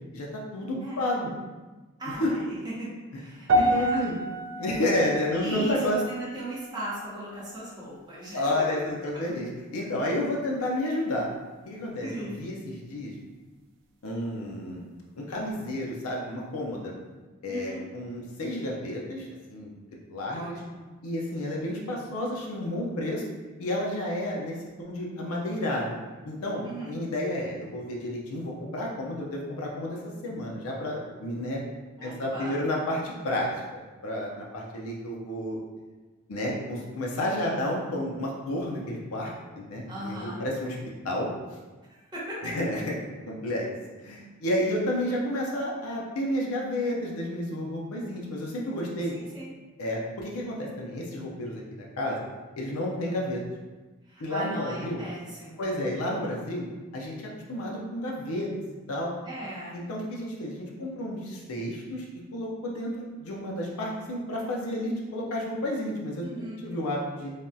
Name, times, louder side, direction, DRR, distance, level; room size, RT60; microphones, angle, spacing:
voice 1, 0.5-1.3 2.2-2.3 3.5-4.2 4.5-6.0 8.3-9.5 9.7-11.3 11.7-13.1 14.0-14.8 15.2-16.9 17.4-19.7 20.1-20.6 21.0-23.2 23.6-25.9 26.3-31.6 32.0-35.6 36.3-40.8 41.0-41.3 42.4-42.9 43.3-43.7 44.0-49.1 49.8-52.2 52.6-53.4 54.2-55.0 55.6-56.7 56.9-57.1 57.5-59.1 59.7-62.0 62.3-67.3, left 1 dB, 80° left, -2 dB, 0.5 m, -31 dB
voice 2, 2.0-4.2 5.3-8.5 12.0-12.4 17.5-17.8 20.3-20.9 26.6-27.0 32.0-32.6 39.9-40.4 41.9-42.4 49.1-49.5 54.1-55.7 59.2-59.8 66.2-66.6, right 1 dB, 20° right, -7 dB, 0.7 m, -38 dB
sound 1, 3.5-7.9 8.1-8.5 9.2-9.3, right 1 dB, 55° right, 0.3 m, -30 dB
3.3 x 2.3 x 2.6 m, 1.2 s
head